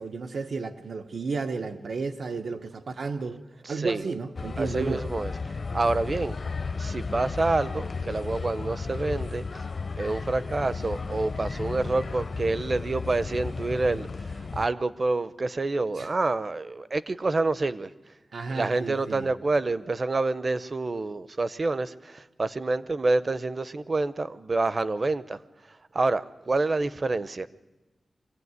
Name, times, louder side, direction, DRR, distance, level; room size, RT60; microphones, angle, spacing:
voice 1, 0.0-3.4 3.7-5.1 15.9-16.1 18.3-19.3, right 4 dB, 80° right, 6 dB, 0.9 m, -32 dB
voice 2, 3.6-4.1 4.6-5.3 5.7-6.4 6.8-9.7 10.0-17.9 18.5-25.4 25.9-27.5, right 3 dB, 40° right, 15 dB, 0.7 m, -27 dB
sound 1, 4.4-14.7, left 4 dB, 50° left, 0.6 m, -34 dB
23.5 x 16.0 x 9.6 m, 1.1 s
wide cardioid pair, 145°, 0 cm